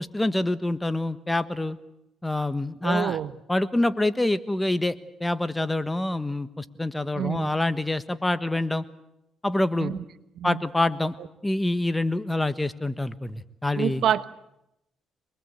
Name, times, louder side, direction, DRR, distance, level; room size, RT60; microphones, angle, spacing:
voice 1, 0.0-1.8 2.2-3.2 3.5-8.8 9.4-10.0 10.4-11.1 11.4-14.0, left 1 dB, 10° left, 1.3 m, -26 dB
voice 2, 2.8-3.3 7.1-7.5 9.8-10.0 10.4-10.6 11.2-11.3 13.8-14.3, right 10 dB, 70° right, 1.0 m, -27 dB
26.0 x 21.0 x 8.2 m
cardioid pair, 80°, 0 cm